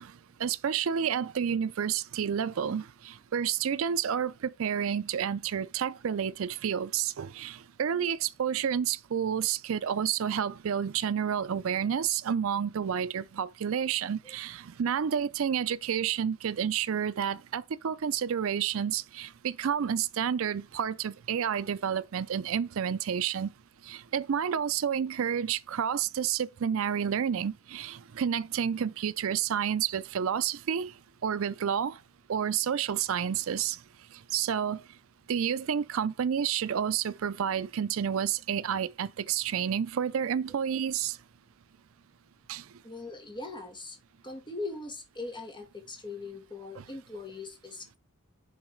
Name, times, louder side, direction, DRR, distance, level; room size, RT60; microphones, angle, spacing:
voice 1, 0.0-23.5 23.8-30.9 31.2-32.0 32.3-33.8 34.1-34.8 35.3-41.2 42.5-42.7, right 8 dB, 60° right, 0.4 m, -30 dB
voice 2, 42.8-44.0 44.2-48.0, left 3 dB, 20° left, 2.2 m, -40 dB
10.0 x 4.0 x 4.4 m
head